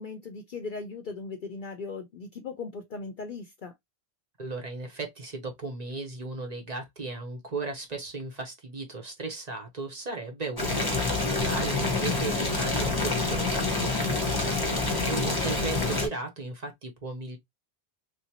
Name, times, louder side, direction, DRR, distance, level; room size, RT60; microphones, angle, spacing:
voice 1, 0.0-3.7 15.1-15.7, left 4 dB, 55° left, 0.7 m, -38 dB
voice 2, 4.4-17.4, right 3 dB, 40° right, 0.9 m, -36 dB
Boiling, 10.6-16.1, left 3 dB, 25° left, 0.9 m, -27 dB
3.3 x 2.7 x 2.8 m
omnidirectional pair, 1.1 m